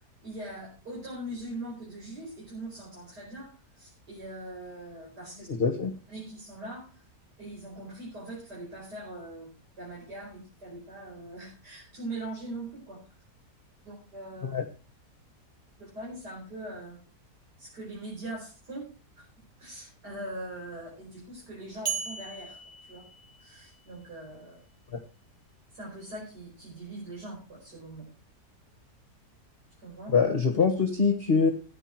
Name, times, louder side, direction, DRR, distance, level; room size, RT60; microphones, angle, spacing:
voice 1, 0.2-5.5 6.1-7.0 7.4-13.0 13.8-14.5 15.8-17.0 17.6-18.9 19.2-19.3 19.6-22.6 22.9-23.0 23.4-24.6 25.7-28.0 29.8-30.1, right 1 dB, 70° right, -3 dB, 5.7 m, -41 dB
voice 2, 5.5-5.9 14.4-14.6 24.9-25.0 30.1-31.5, left 5 dB, 40° left, 6 dB, 1.4 m, -24 dB
sound 1, 21.9-23.9, right 6 dB, 40° right, 2.3 m, -37 dB
14.5 x 9.2 x 4.6 m, 0.35 s
omnidirectional pair, 1.8 m